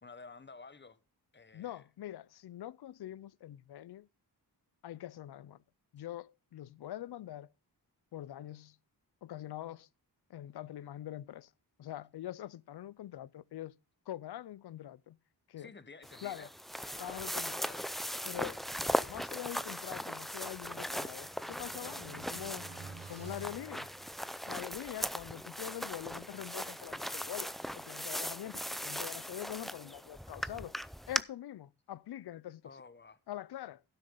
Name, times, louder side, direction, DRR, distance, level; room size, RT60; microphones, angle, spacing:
voice 1, 0.0-1.0 1.3-1.8 15.6-16.5 16.8-17.9 32.6-33.2, left 4 dB, 25° left, 1.1 m, -52 dB
voice 2, 1.5-4.1 4.8-5.6 5.9-7.5 8.1-8.8 9.2-9.9 10.3-11.5 11.8-13.8 14.1-15.2 15.5-15.7 16.2-16.5 17.0-17.6 18.3-18.6 19.1-22.7 23.1-23.9 24.5-30.7 31.1-32.6 33.3-33.8, left 12 dB, 70° left, 0.5 m, -44 dB
sound 1, 16.0-31.2, equal, ahead, 0.4 m, -39 dB
sound 2, 20.8-24.6, right 4 dB, 80° right, 2.9 m, -51 dB
15.5 x 6.6 x 3.8 m
wide cardioid pair, 75°, 40 cm